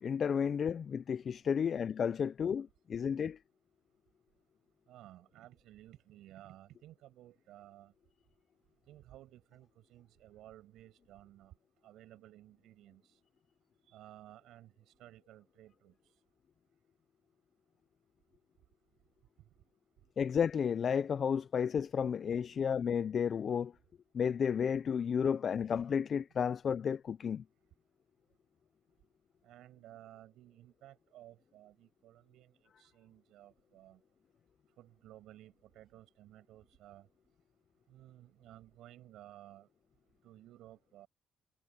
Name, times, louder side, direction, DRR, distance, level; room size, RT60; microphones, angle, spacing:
voice 1, 0.0-3.4 20.2-23.7 24.1-27.4, left 7 dB, 55° left, 0.4 m, -32 dB
voice 2, 4.9-7.9 8.9-11.5 11.8-13.1 13.9-15.9 29.4-34.0 34.8-37.1 37.9-39.7 40.2-41.1, right 14 dB, 85° right, 7.0 m, -56 dB
cardioid pair, 90°, 0 cm